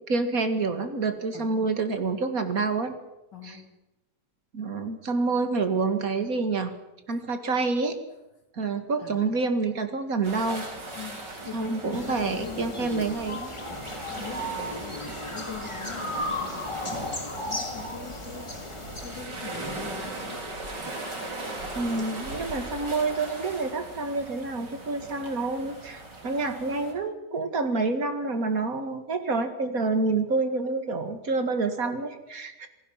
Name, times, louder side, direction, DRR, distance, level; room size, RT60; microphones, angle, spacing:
voice 1, 0.1-2.9 3.4-3.6 4.5-6.7 7.1-7.9 8.6-10.7 11.5-13.5 21.7-32.7, right 3 dB, 55° right, 8 dB, 2.4 m, -28 dB
voice 2, 1.3-1.7 3.3-3.7 9.0-9.3 11.0-13.2 13.8-18.5 19.0-20.5, left 5 dB, 85° left, 3 dB, 3.5 m, -41 dB
sound 1, 10.2-26.9, right 2 dB, 90° right, 4.7 m, -39 dB
sound 2, 11.9-19.3, left 1 dB, 15° left, 1.9 m, -35 dB
27.5 x 19.0 x 5.8 m, 0.96 s
omnidirectional pair, 1.8 m